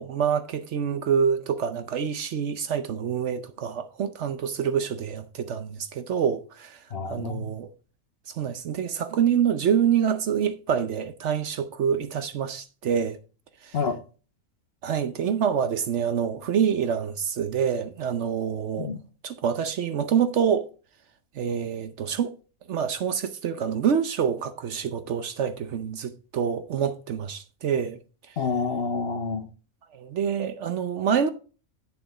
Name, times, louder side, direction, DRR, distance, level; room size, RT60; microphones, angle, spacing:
voice 1, 0.0-7.7 8.3-13.2 13.6-13.8 14.8-18.9 19.2-20.7 21.3-22.3 22.7-28.0 29.9-31.3, right 7 dB, 60° right, 0.9 m, -26 dB
voice 2, 6.9-7.5 13.7-14.0 18.8-19.0 28.4-29.5, left 5 dB, 50° left, 0.9 m, -28 dB
8.6 x 7.1 x 3.9 m
omnidirectional pair, 1.5 m